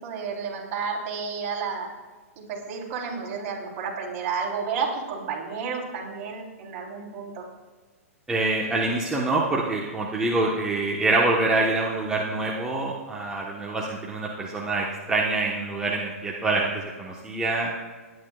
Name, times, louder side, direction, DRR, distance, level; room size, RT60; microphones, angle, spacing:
voice 1, 0.0-1.9 2.4-7.4, right 5 dB, 40° right, -3 dB, 4.1 m, -31 dB
voice 2, 8.3-17.7, right 2 dB, 10° right, -4 dB, 1.3 m, -25 dB
20.5 x 10.0 x 2.5 m, 1.4 s
hypercardioid pair, 130°, 8 cm